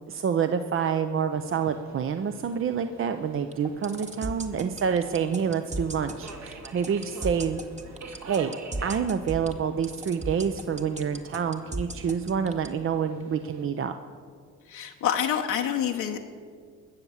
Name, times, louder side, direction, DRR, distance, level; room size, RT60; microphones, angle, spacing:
voice 1, 0.1-7.6 8.2-8.6 8.8-13.9, right 7 dB, 45° right, 8 dB, 0.6 m, -27 dB
Subway metro underground, 1.3-13.7, right 3 dB, 65° right, 2.0 m, -47 dB
sound 1, 3.5-12.7, right 2 dB, 25° right, 1.2 m, -35 dB
voice 2, 14.7-16.2, left 9 dB, 75° left, 2 dB, 0.9 m, -27 dB
20.5 x 7.2 x 7.1 m, 2.1 s
cardioid pair, 90°, 30 cm